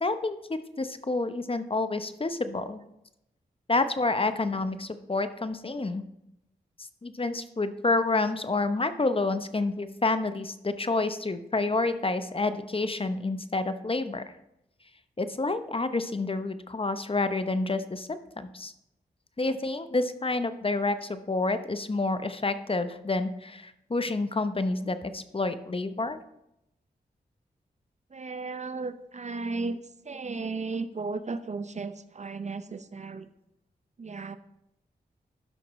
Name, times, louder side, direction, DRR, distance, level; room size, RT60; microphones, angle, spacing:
voice 1, 0.0-2.8 3.7-6.0 7.0-14.2 15.2-18.7 19.4-26.2, left 3 dB, 30° left, 10 dB, 0.8 m, -29 dB
voice 2, 28.1-33.3 34.0-34.4, right 3 dB, 40° right, 12 dB, 0.6 m, -35 dB
12.5 x 5.9 x 3.1 m, 0.83 s
cardioid pair, 40°, 17 cm